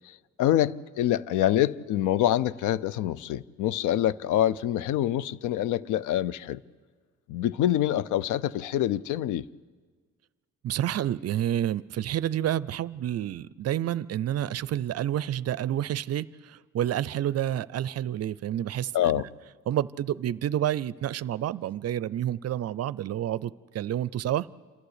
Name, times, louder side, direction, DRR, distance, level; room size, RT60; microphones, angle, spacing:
voice 1, 0.4-6.6 7.3-9.4 18.9-19.2, left 12 dB, 85° left, 0.5 m, -25 dB
voice 2, 10.6-19.2 19.7-24.5, right 11 dB, 55° right, 0.5 m, -29 dB
28.0 x 12.0 x 8.1 m
cardioid pair, 90°, 30 cm